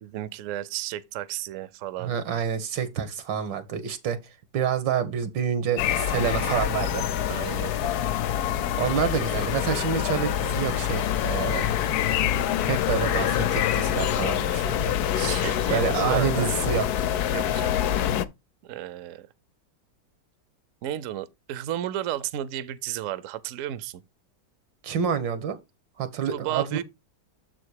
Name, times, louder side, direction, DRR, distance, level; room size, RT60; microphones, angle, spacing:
voice 1, 0.0-2.1 7.3-7.7 15.1-16.7 17.3-17.9 18.6-19.3 20.8-24.0 26.3-26.8, right 12 dB, 65° right, 0.8 m, -33 dB
voice 2, 2.0-4.2 4.5-7.0 8.7-11.8 12.7-15.0 15.7-17.1 24.8-25.6 26.0-26.8, right 8 dB, 85° right, 1.8 m, -28 dB
sound 1, 5.8-18.3, left 10 dB, 70° left, 1.0 m, -26 dB
7.3 x 4.3 x 4.7 m
omnidirectional pair, 1.9 m